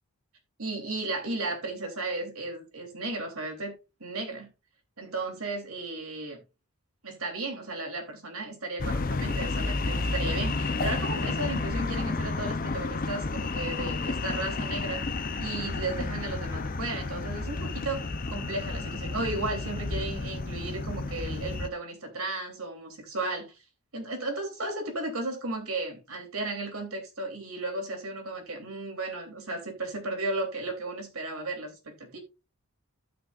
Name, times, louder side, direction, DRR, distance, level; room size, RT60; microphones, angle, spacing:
voice 1, 0.6-3.7 4.0-4.5 5.0-6.4 7.0-15.0 15.4-23.6 23.9-32.2, right 2 dB, 75° right, 3.2 m, -34 dB
sound 1, 8.8-21.7, left 3 dB, 40° left, 0.6 m, -31 dB
15.5 x 6.0 x 2.5 m
head